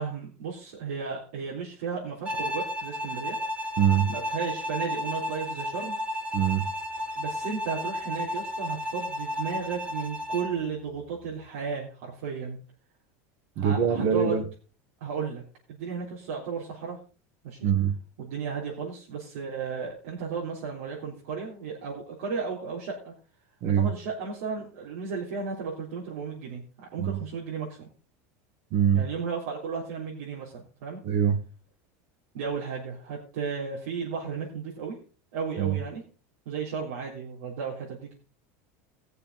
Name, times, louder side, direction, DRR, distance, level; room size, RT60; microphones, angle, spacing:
voice 1, 0.0-3.4 4.1-6.0 7.2-12.6 13.6-14.4 15.0-15.4 15.7-17.0 17.4-17.6 18.2-23.1 23.7-26.6 26.9-27.9 28.9-31.0 32.3-35.0 35.3-36.0 36.5-38.1, right 5 dB, 85° right, -5 dB, 3.7 m, -34 dB
Bowed string instrument, 2.3-10.6, left 1 dB, 15° right, 1.5 m, -33 dB
voice 2, 3.8-4.1 6.3-6.7 13.6-14.4 17.6-17.9 23.6-23.9 27.0-27.2 28.7-29.0 31.0-31.4 35.6-35.8, right 8 dB, 45° right, 9 dB, 1.5 m, -23 dB
19.5 x 6.8 x 4.1 m, 0.36 s
supercardioid pair, 170°, 8 cm